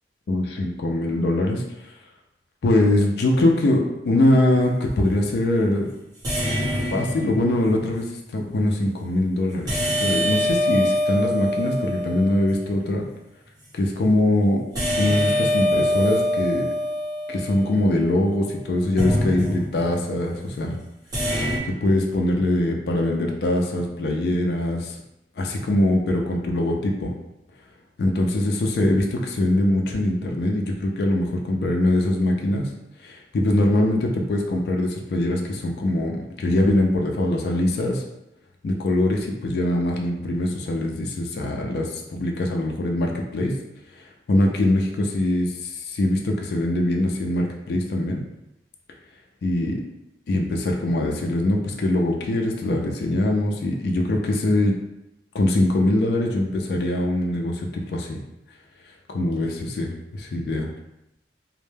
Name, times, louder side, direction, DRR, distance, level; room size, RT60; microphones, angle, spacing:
voice 1, 0.3-1.9 2.6-5.9 6.7-13.1 13.7-14.6 15.0-16.7 17.3-20.8 21.6-25.0 25.4-27.1 28.0-32.7 33.0-38.0 38.6-43.5 44.0-48.2 49.4-49.8 50.3-54.7 55.3-58.2 59.1-60.7, left 1 dB, 60° left, 1 dB, 0.3 m, -22 dB
sound 1, 4.5-4.8 6.2-7.8 9.7-12.7 14.7-18.1 19.0-20.0 21.1-21.6, left 1 dB, 20° right, 0.9 m, -24 dB
2.1 x 2.1 x 3.1 m, 0.90 s
head